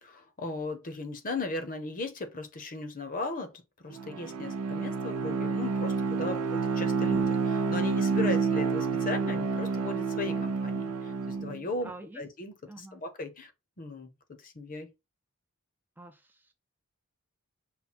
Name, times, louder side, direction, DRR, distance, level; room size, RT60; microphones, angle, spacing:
voice 1, 0.0-13.5 13.8-14.1 14.4-14.9, left 3 dB, 40° left, 0.8 m, -37 dB
Bowed string instrument, 3.9-11.6, right 5 dB, 85° right, 0.5 m, -29 dB
voice 2, 11.8-12.2 12.6-13.0 16.0-16.5, right 2 dB, 10° right, 0.4 m, -47 dB
5.7 x 2.2 x 4.2 m
head